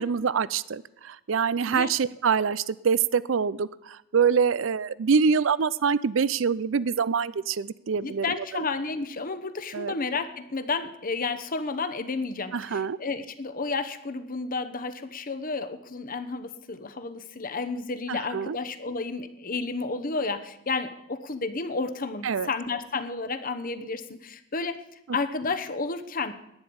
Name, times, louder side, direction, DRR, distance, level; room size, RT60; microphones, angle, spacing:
voice 1, 0.0-8.3 8.5-8.7 9.7-9.9 12.5-13.0 18.1-18.6 22.2-22.5, right 6 dB, 70° right, 19 dB, 0.5 m, -25 dB
voice 2, 8.0-24.8 25.1-26.3, left 4 dB, 45° left, 9 dB, 1.0 m, -31 dB
11.0 x 9.8 x 7.0 m, 0.84 s
head